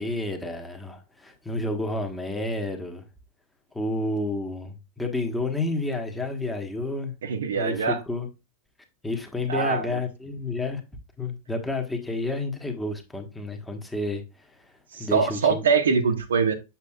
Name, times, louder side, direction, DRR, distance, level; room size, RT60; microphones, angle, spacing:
voice 1, 0.0-3.0 3.7-7.2 7.5-8.3 9.0-10.8 11.2-14.2 14.9-15.6, left 2 dB, 5° left, 1.4 m, -30 dB
voice 2, 7.2-8.0 9.5-10.0 14.9-16.5, right 5 dB, 65° right, 0.9 m, -23 dB
7.4 x 7.0 x 2.3 m
figure-of-eight pair, 90°, 0 cm